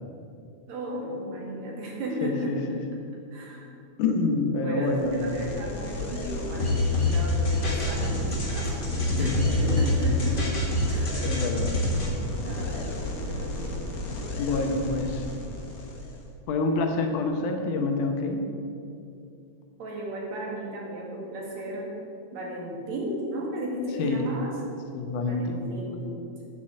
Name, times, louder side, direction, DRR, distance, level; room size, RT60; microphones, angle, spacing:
voice 1, 0.7-2.5 3.3-3.7 4.6-10.5 10.9-11.4 12.4-13.9 15.2-15.3 19.8-22.0 22.3-24.5 25.2-26.2, right 1 dB, 65° right, -2 dB, 3.0 m, -35 dB
voice 2, 2.2-2.6 4.0-5.4 9.0-10.0 11.2-11.8 12.0-12.4 14.4-15.2 16.5-18.4 24.0-24.2 24.9-25.6, left 3 dB, 85° left, 4 dB, 2.6 m, -27 dB
sound 1, 4.8-16.3, left 2 dB, 65° left, 0.9 m, -34 dB
sound 2, 6.6-12.1, left 1 dB, 30° left, 0.9 m, -26 dB
8.9 x 6.6 x 7.3 m, 2.5 s
omnidirectional pair, 3.5 m